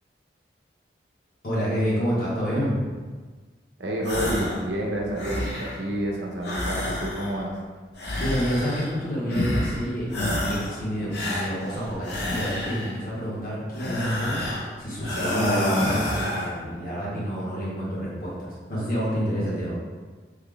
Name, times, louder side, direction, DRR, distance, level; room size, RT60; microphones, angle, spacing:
voice 1, 1.4-2.9 8.2-14.4 14.8-19.7, equal, 50° left, -7 dB, 1.1 m, -28 dB
voice 2, 3.8-7.7, right 1 dB, 80° right, -1 dB, 0.6 m, -29 dB
sound 1, 4.0-4.6 5.0-5.8 6.4-7.5 8.0-9.0 9.3-9.8 10.1-10.8 11.1-13.0 13.7-14.7 15.0-16.5, left 1 dB, 70° left, 0.7 m, -28 dB
3.2 x 2.3 x 3.7 m, 1.4 s
head